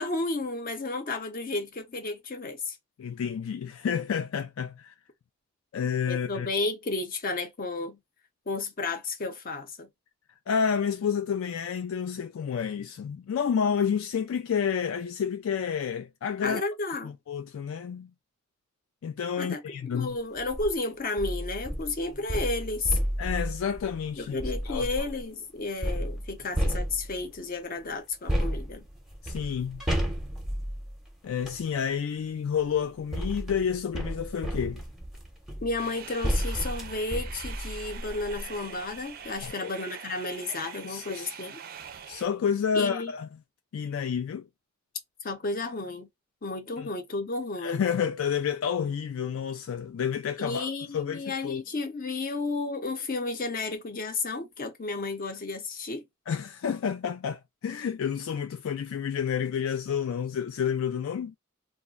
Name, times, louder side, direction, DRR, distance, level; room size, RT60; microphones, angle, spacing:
voice 1, 0.0-2.8 6.1-8.0 8.5-9.9 16.4-17.2 19.4-23.0 24.2-28.8 35.6-41.6 42.7-43.1 45.2-46.1 46.4-47.8 50.4-56.0, left 3 dB, 45° left, 0.7 m, -32 dB
voice 2, 3.0-4.9 5.7-6.5 10.5-16.6 17.0-18.1 19.0-20.2 23.2-24.4 24.6-24.9 29.2-29.8 31.2-34.8 39.4-39.7 40.8-41.3 42.1-43.3 43.7-44.5 46.8-46.9 47.6-51.6 56.3-61.4, left 7 dB, 75° left, 0.3 m, -30 dB
sound 1, 20.4-20.7 21.2-25.2 25.8-27.4 28.3-31.6 32.6-38.5 38.9-39.0 39.3-39.5, equal, ahead, 0.7 m, -32 dB
sound 2, 35.8-42.2, right 8 dB, 45° right, 0.4 m, -44 dB
2.4 x 2.1 x 3.7 m
head